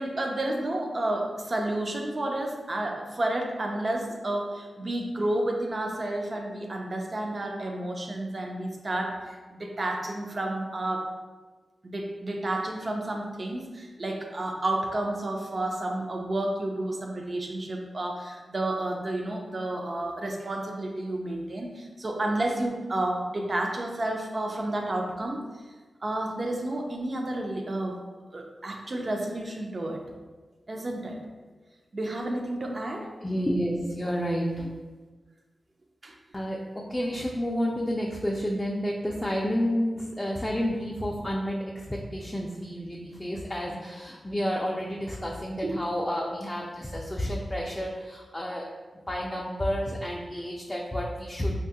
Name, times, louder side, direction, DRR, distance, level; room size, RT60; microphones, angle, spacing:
voice 1, 0.0-11.1 11.8-25.4 26.0-28.0 28.3-30.0 30.7-31.2 31.9-33.1 36.0-36.2 45.6-45.8 46.2-46.3, right 1 dB, 45° right, 1 dB, 0.4 m, -31 dB
voice 2, 33.2-34.7 36.3-48.6 49.1-51.6, equal, 15° left, -2 dB, 0.3 m, -30 dB
3.2 x 2.2 x 2.8 m, 1.4 s
cardioid pair, 65°, 0 cm